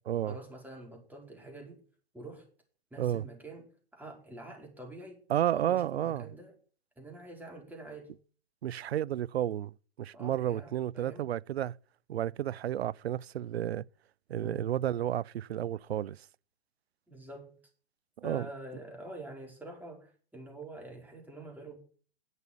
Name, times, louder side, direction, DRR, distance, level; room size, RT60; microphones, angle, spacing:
voice 1, 0.3-1.8 2.1-2.4 2.9-5.2 5.5-6.5 7.0-8.1 10.1-11.3 14.4-14.7 17.1-17.6 18.2-21.8, right 2 dB, 5° right, 4.8 m, -46 dB
voice 2, 5.3-6.3 8.6-9.7 10.0-11.8 12.1-13.8 14.3-16.2 18.2-18.5, right 11 dB, 85° right, 0.5 m, -31 dB
11.0 x 8.2 x 9.9 m
hypercardioid pair, 115°, 31 cm